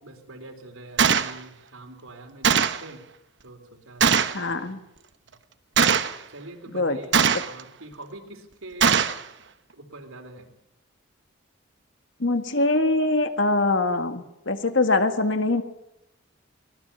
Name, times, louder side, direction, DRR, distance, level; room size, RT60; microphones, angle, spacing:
voice 1, 0.0-3.0 3.4-4.7 5.3-5.4 6.3-7.1 7.4-9.0 9.7-10.5, right 2 dB, 85° right, 4 dB, 4.1 m, -44 dB
Gunshot gunfire, 1.0-1.3 2.4-2.8 4.0-4.4 5.8-6.2 7.1-7.6 8.8-9.2, right 6 dB, 55° right, 1.0 m, -20 dB
voice 2, 4.3-4.8 6.7-7.0 12.2-15.6, left 2 dB, 60° left, 8 dB, 1.8 m, -23 dB
23.5 x 19.0 x 7.1 m, 0.83 s
head